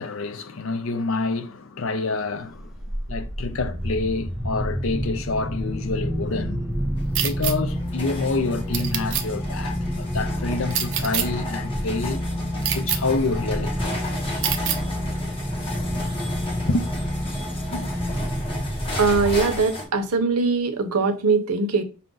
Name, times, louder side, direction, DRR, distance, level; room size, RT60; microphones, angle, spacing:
voice 1, 0.0-2.7 3.1-6.6 7.2-12.3 12.7-14.1 16.7-16.9 17.6-17.9, left 3 dB, 60° left, 0.5 m, -28 dB
sound 1, 2.5-19.9, equal, ahead, 0.3 m, -29 dB
sound 2, 7.0-19.8, left 1 dB, 25° left, 1.2 m, -35 dB
sound 3, 7.2-7.5 8.7-9.2 10.7-11.3 12.6-13.0 14.4-14.8, right 9 dB, 55° right, 0.6 m, -25 dB
voice 2, 19.0-21.8, right 4 dB, 85° right, 0.8 m, -21 dB
5.6 x 2.5 x 3.8 m
head